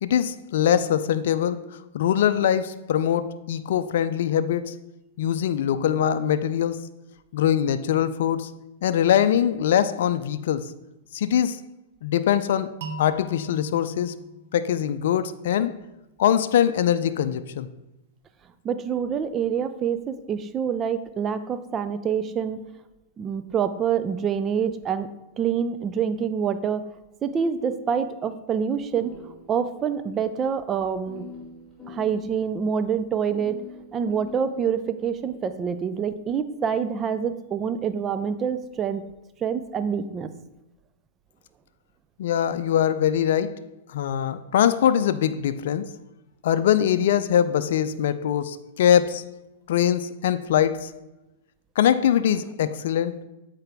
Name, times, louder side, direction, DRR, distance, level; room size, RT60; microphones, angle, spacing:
voice 1, 0.0-4.8 5.2-6.9 7.3-8.5 8.8-10.7 11.1-11.6 12.0-14.1 14.5-15.7 16.2-17.7 42.2-43.6 43.9-45.9 46.4-49.3 49.7-50.9 51.8-53.2, left 9 dB, 65° left, 0.4 m, -22 dB
sound 1, 12.8-15.7, right 1 dB, 65° right, 0.8 m, -40 dB
voice 2, 18.6-22.6 23.2-25.1 25.4-26.8 27.2-29.1 29.5-31.2 31.9-33.6 33.9-39.0 39.4-40.3, right 7 dB, 25° right, 0.5 m, -26 dB
sound 2, 28.5-29.9 30.1-30.2 31.0-32.4 33.3-35.3, left 4 dB, 5° right, 2.3 m, -44 dB
7.8 x 4.9 x 3.5 m
hypercardioid pair, 110°, 0 cm